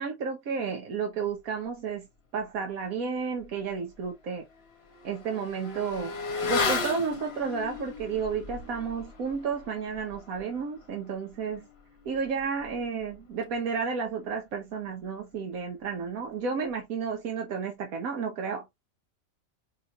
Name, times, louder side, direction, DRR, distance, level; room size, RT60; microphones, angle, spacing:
voice 1, 0.0-2.1 2.3-4.4 5.0-6.2 6.4-11.7 12.0-18.6, right 5 dB, 90° right, 1.4 m, -32 dB
Motorcycle / Accelerating revving vroom, 3.4-3.5 3.9-13.9 14.2-14.3, left 4 dB, 50° left, 1.1 m, -36 dB
5.4 x 3.0 x 2.4 m
omnidirectional pair, 1.4 m